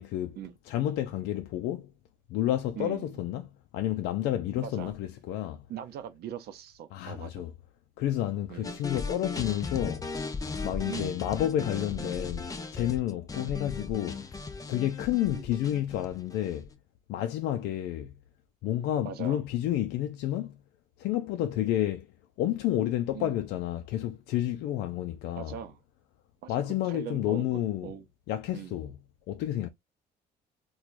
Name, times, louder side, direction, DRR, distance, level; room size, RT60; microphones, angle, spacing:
voice 1, 0.0-0.4 0.7-1.9 2.3-5.6 6.9-7.5 8.0-10.1 10.6-14.3 14.7-16.7 17.1-18.1 18.6-20.6 21.0-22.1 22.4-25.6 26.5-27.9 28.3-29.0 29.3-29.7, left 12 dB, 85° left, 0.4 m, -30 dB
voice 2, 2.8-3.2 4.6-4.9 5.7-7.5 8.5-8.9 10.9-11.2 13.4-13.6 15.3-15.5 19.0-19.4 21.4-21.5 23.1-23.4 25.4-25.8 26.4-26.5 26.8-28.0 28.5-28.8, right 9 dB, 70° right, 0.6 m, -41 dB
sound 1, 8.6-16.7, left 4 dB, 20° left, 0.6 m, -37 dB
4.5 x 2.3 x 2.5 m
cardioid pair, 110°, 17 cm